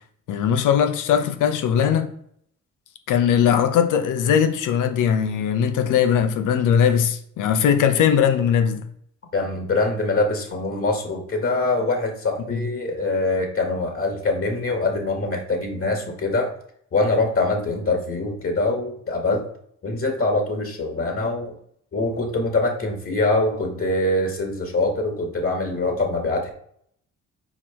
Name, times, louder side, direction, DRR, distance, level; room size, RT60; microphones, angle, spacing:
voice 1, 0.3-2.1 3.1-8.9 12.5-12.6, left 8 dB, 85° left, 1.0 m, -20 dB
voice 2, 9.3-16.5 16.9-19.5 19.8-21.5 21.9-26.5, left 2 dB, 45° left, 2.1 m, -24 dB
6.2 x 4.8 x 4.4 m
cardioid pair, 90°, 30 cm